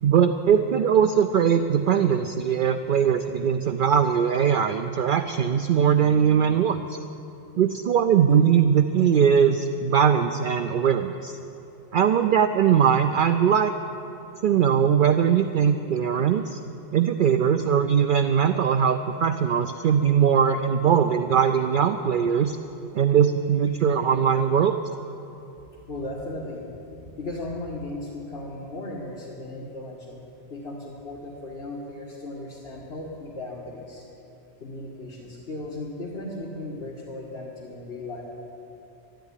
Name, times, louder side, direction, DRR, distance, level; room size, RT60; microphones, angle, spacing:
voice 1, 0.0-7.0 7.6-11.4 11.9-13.7 14.4-16.6 16.9-22.6 22.9-24.7, right 8 dB, 60° right, 8 dB, 0.6 m, -21 dB
voice 2, 25.9-26.7 27.2-30.2 30.5-34.0 34.6-38.2, left 2 dB, 65° left, -6 dB, 2.0 m, -36 dB
12.5 x 10.0 x 9.9 m, 3.0 s
omnidirectional pair, 1.2 m